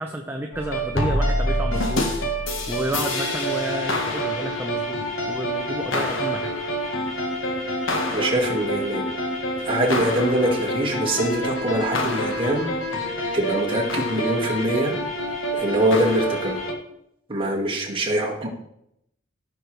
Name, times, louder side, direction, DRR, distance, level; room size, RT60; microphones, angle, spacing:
voice 1, 0.0-2.1 2.7-5.0 5.3-6.5, right 1 dB, 10° right, 1 dB, 0.7 m, -30 dB
sound 1, 0.5-16.7, equal, 75° left, 1.5 m, -26 dB
voice 2, 8.1-9.0 9.6-14.9 15.5-16.6 17.3-18.5, right 1 dB, 25° right, -2 dB, 2.1 m, -24 dB
15.5 x 6.2 x 3.4 m, 0.77 s
head